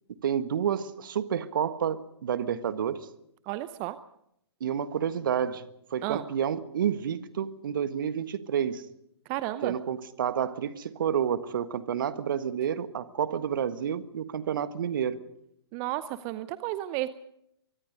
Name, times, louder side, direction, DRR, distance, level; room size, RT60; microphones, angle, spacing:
voice 1, 0.2-3.1 4.6-8.8 9.6-15.2, right 8 dB, 50° right, 1.5 m, -29 dB
voice 2, 3.4-4.0 6.0-6.2 9.3-9.7 15.7-17.1, right 16 dB, 25° right, 0.7 m, -32 dB
24.0 x 24.0 x 5.2 m
figure-of-eight pair, 120°, 14 cm